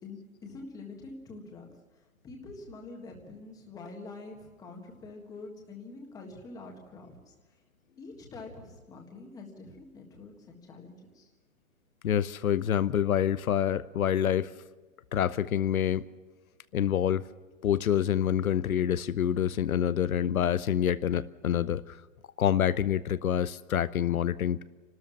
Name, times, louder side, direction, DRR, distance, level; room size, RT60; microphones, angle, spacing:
voice 1, 0.0-1.7 2.2-7.3 8.0-11.3, left 3 dB, 10° left, 2 dB, 1.7 m, -46 dB
voice 2, 12.0-14.5 15.1-16.0 16.7-17.3 17.6-22.0 22.4-24.6, left 9 dB, 80° left, 15 dB, 0.8 m, -27 dB
27.5 x 13.0 x 7.2 m, 1.2 s
hypercardioid pair, 160°, 41 cm